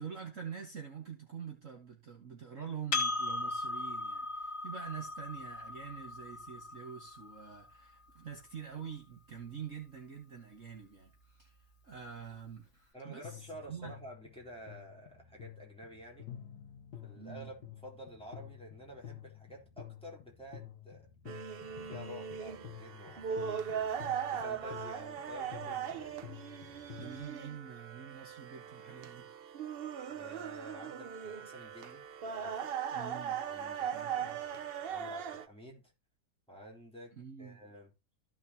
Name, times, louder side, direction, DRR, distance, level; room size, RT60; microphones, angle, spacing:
voice 1, 0.0-11.6 11.8-13.9 17.1-17.5 27.0-29.3 32.9-33.4 33.9-34.4 37.1-37.6, right 7 dB, 45° right, 1.9 m, -46 dB
Percussion, 2.9-7.7, left 3 dB, 50° left, 1.9 m, -38 dB
voice 2, 12.9-16.3 17.0-21.1 21.7-26.2 30.1-32.7 33.4-35.8 36.5-37.9, equal, 5° left, 3.5 m, -50 dB
sound 1, 13.2-27.2, left 11 dB, 70° left, 1.7 m, -51 dB
sound 2, 21.2-35.4, right 8 dB, 70° right, 0.5 m, -39 dB
14.5 x 6.0 x 2.8 m
omnidirectional pair, 1.9 m